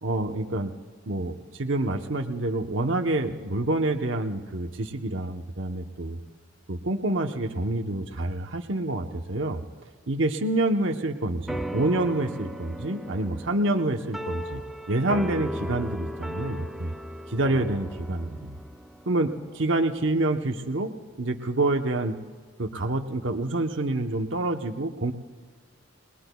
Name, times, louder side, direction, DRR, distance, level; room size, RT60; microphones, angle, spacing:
voice 1, 0.0-0.7 1.1-6.2 6.7-9.6 10.1-14.6 14.9-16.9 17.3-18.6 19.1-20.9 21.2-22.2 22.6-25.1, right 2 dB, 70° right, 3 dB, 1.0 m, -27 dB
sound 1, 11.5-20.2, equal, ahead, 0.6 m, -37 dB
28.5 x 20.0 x 2.3 m, 1.5 s
head